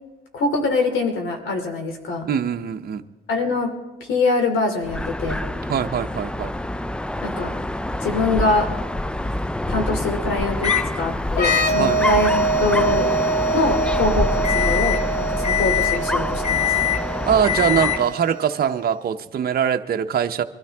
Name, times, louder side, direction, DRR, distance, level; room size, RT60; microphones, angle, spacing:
voice 1, 0.3-2.3 3.3-3.7 4.0-5.4 7.2-7.5 8.0-8.7 9.7-13.1 13.5-16.6, left 3 dB, 75° left, 4 dB, 2.8 m, -24 dB
voice 2, 2.3-3.0 5.7-6.5 11.8-12.0 17.3-20.4, right 8 dB, 50° right, 6 dB, 0.8 m, -22 dB
Dog, 4.8-18.1, left 1 dB, 5° left, 0.4 m, -26 dB
Microwave oven, 10.6-10.9 11.4-18.3, left 11 dB, 35° left, 1.0 m, -26 dB
sound 1, 11.3-18.8, right 3 dB, 55° left, 1.0 m, -25 dB
23.0 x 13.0 x 3.5 m, 1.1 s
cardioid pair, 90°, 20 cm